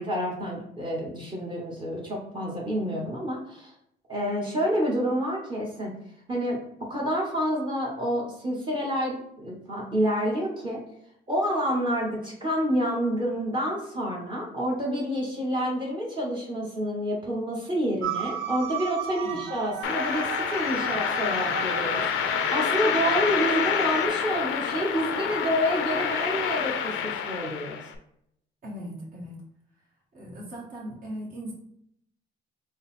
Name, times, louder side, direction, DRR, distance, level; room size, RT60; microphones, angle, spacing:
voice 1, 0.0-3.7 4.1-5.9 6.3-10.8 11.3-27.8, equal, 25° right, -3 dB, 1.0 m, -28 dB
sound 1, 18.0-24.1, right 8 dB, 85° right, 0.5 m, -35 dB
sound 2, 19.8-27.9, left 8 dB, 90° left, 0.4 m, -28 dB
voice 2, 28.6-29.4 30.1-31.5, equal, 45° right, -3 dB, 1.2 m, -39 dB
3.8 x 2.1 x 4.0 m, 0.74 s
cardioid pair, 90°, 20 cm